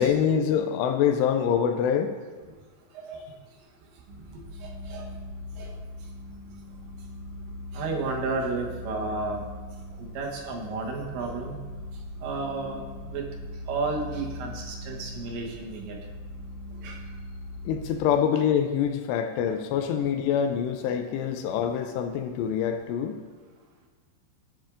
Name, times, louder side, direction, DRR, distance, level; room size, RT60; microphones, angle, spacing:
voice 1, 0.0-2.2 17.6-23.2, left 8 dB, 85° left, 7 dB, 2.5 m, -25 dB
sound 1, 4.1-18.0, left 1 dB, 65° right, 2.2 m, -40 dB
voice 2, 7.7-9.4 10.0-11.6 12.2-13.2 13.7-16.0 16.8-17.0, right 3 dB, 80° right, 0 dB, 3.4 m, -32 dB
10.0 x 10.0 x 2.5 m, 1.4 s
omnidirectional pair, 5.1 m